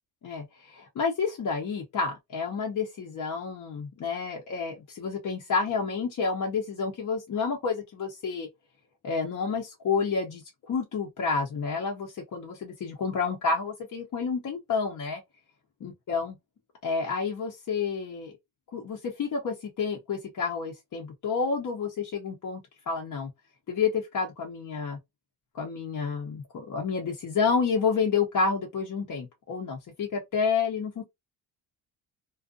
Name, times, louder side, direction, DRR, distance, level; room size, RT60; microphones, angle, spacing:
voice 1, 0.2-8.5 9.0-15.2 15.8-16.3 16.8-18.3 18.7-22.6 22.9-23.3 23.7-25.0 25.5-31.0, left 5 dB, 50° left, 0.8 m, -29 dB
2.5 x 2.4 x 2.4 m
cardioid pair, 105°, 40 cm